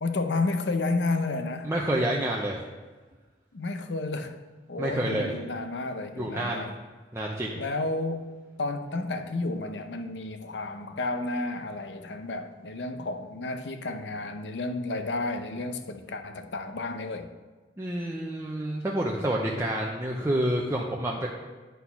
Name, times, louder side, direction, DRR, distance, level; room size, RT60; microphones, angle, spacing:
voice 1, 0.0-1.7 3.5-4.4 4.7-6.8 7.6-8.3 8.6-17.3, left 2 dB, 80° left, 8 dB, 0.7 m, -31 dB
voice 2, 1.6-2.6 4.8-5.3 6.2-6.7 7.1-7.6 17.8-21.3, right 1 dB, 15° right, -2 dB, 0.6 m, -28 dB
9.4 x 4.2 x 5.7 m, 1.3 s
head